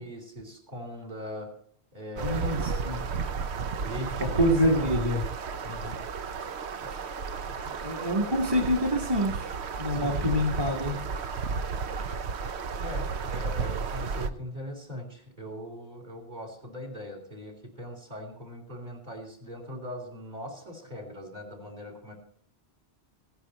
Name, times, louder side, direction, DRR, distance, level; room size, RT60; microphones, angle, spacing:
voice 1, 0.0-1.5 1.9-2.9 3.7-4.9 5.6-6.1 9.9-10.2 12.8-22.1, left 1 dB, 40° right, 2 dB, 3.7 m, -40 dB
voice 2, 2.2-3.0 4.3-5.2 7.6-9.5 9.8-11.0, equal, 20° right, 0 dB, 1.8 m, -26 dB
sound 1, 2.2-14.3, right 5 dB, 80° right, 1.1 m, -33 dB
16.5 x 10.0 x 4.2 m, 0.62 s
omnidirectional pair, 1.1 m